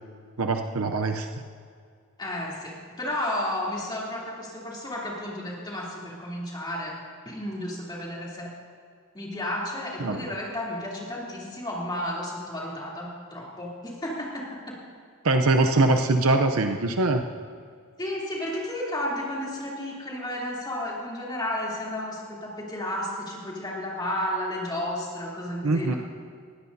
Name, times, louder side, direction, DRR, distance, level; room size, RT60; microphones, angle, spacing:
voice 1, 0.4-1.3 10.0-10.3 15.2-17.3 25.6-25.9, right 2 dB, 70° right, 5 dB, 0.7 m, -22 dB
voice 2, 2.2-7.0 7.2-8.6 9.1-14.8 18.0-26.0, left 1 dB, 20° left, -5 dB, 3.1 m, -32 dB
19.5 x 16.0 x 2.7 m, 2.2 s
head